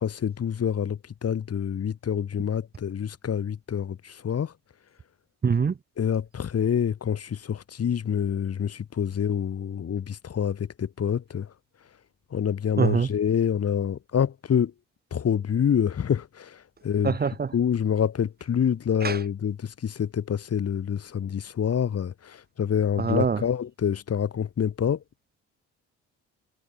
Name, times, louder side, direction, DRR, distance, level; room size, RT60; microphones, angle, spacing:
voice 1, 0.0-4.5 6.0-11.5 12.3-14.7 15.1-17.2 17.5-25.0, left 8 dB, 55° left, 4.4 m, -27 dB
voice 2, 5.4-5.7 12.8-13.1 17.0-17.5 19.0-19.2 23.0-23.4, right 6 dB, 30° right, 1.3 m, -23 dB
cardioid pair, 90°, 30 cm